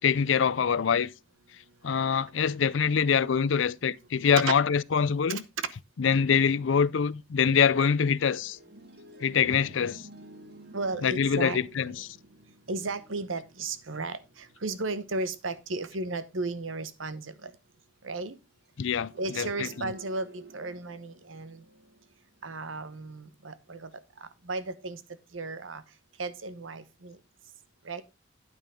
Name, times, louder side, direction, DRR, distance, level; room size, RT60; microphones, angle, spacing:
voice 1, 0.0-1.1 1.8-5.4 6.0-8.6 9.2-10.0 11.0-12.2 18.8-19.7, left 6 dB, 75° left, 0.5 m, -25 dB
sound 1, 7.9-15.5 18.7-22.7, right 2 dB, 55° right, 1.6 m, -52 dB
voice 2, 10.7-11.6 12.7-17.5 18.0-18.4 19.2-21.6 22.4-23.9 24.2-25.0 25.3-25.8 26.2-27.2 27.8-28.0, right 3 dB, 85° right, 1.0 m, -35 dB
9.3 x 8.9 x 3.6 m
head